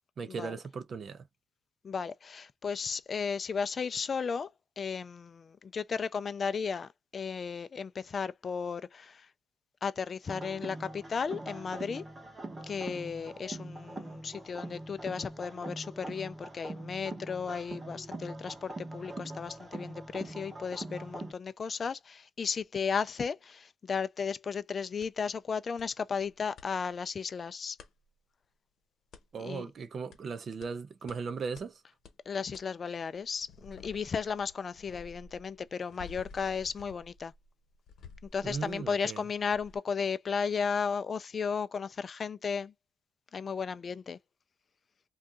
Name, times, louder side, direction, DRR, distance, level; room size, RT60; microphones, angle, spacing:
voice 1, 0.2-1.3 29.3-31.8 38.4-39.2, right 5 dB, 45° right, 0.5 m, -37 dB
voice 2, 1.8-4.5 4.8-9.2 9.8-12.0 12.7-27.8 29.4-29.7 32.3-37.3 38.3-42.7 43.3-44.2, left 6 dB, 35° left, 0.3 m, -34 dB
sound 1, 10.3-21.3, right 2 dB, 20° right, 0.9 m, -43 dB
sound 2, 25.0-25.1 25.8-25.9 26.2-26.7 27.8-27.9 29.1-29.3 30.1-30.2 30.6-30.7 31.1-31.2 31.6-31.7 32.0-32.2 32.5-32.7 33.1-39.1 39.5-39.8, left 4 dB, 65° left, 1.0 m, -52 dB
2.6 x 2.3 x 3.6 m
cardioid pair, 115°, 0 cm